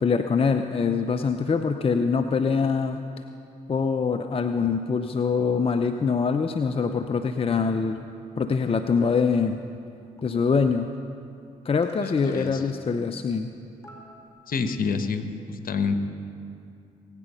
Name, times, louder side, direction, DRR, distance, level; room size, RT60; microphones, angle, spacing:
voice 1, 0.0-3.0 3.7-8.1 8.4-9.6 10.2-10.9 11.6-13.5, left 5 dB, 30° left, 7 dB, 0.6 m, -24 dB
sound 1, 9.7-9.8 10.2-10.3 11.4-11.5 11.8-12.5 13.5-13.6 13.8-14.5, equal, 15° left, 3.7 m, -49 dB
voice 2, 12.0-12.6 14.5-16.0, left 5 dB, 55° left, 8 dB, 1.2 m, -28 dB
20.0 x 9.0 x 5.6 m, 2.6 s
hypercardioid pair, 45°, 18 cm